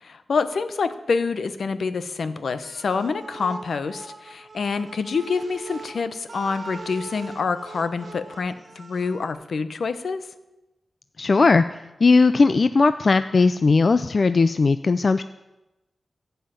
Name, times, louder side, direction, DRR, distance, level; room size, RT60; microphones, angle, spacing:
voice 1, 0.0-10.2, left 4 dB, 75° left, 12 dB, 0.8 m, -27 dB
sound 1, 2.6-9.3, right 3 dB, 50° right, 1.1 m, -41 dB
voice 2, 11.2-11.6 12.0-15.2, left 4 dB, 45° left, 12 dB, 0.4 m, -18 dB
15.5 x 5.6 x 9.0 m, 0.99 s
wide cardioid pair, 140°, 0 cm